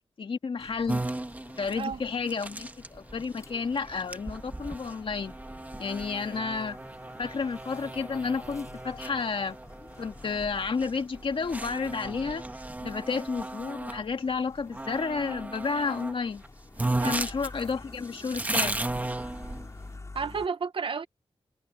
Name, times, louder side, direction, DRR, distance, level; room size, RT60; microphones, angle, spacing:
voice 1, 0.2-1.0 1.6-5.4 5.8-6.8 7.2-9.6 10.0-12.5 12.8-16.4 17.1-18.8, left 5 dB, 60° left, 2.0 m, -31 dB
sound 1, 0.6-12.4 13.7-20.5, left 3 dB, 30° left, 4.6 m, -50 dB
sound 2, 0.9-14.0 14.7-16.2 16.4-16.5 16.8-19.9, right 2 dB, 15° right, 1.6 m, -35 dB
voice 2, 20.1-21.1, right 5 dB, 60° right, 1.0 m, -31 dB
wide cardioid pair, 155°, 10 cm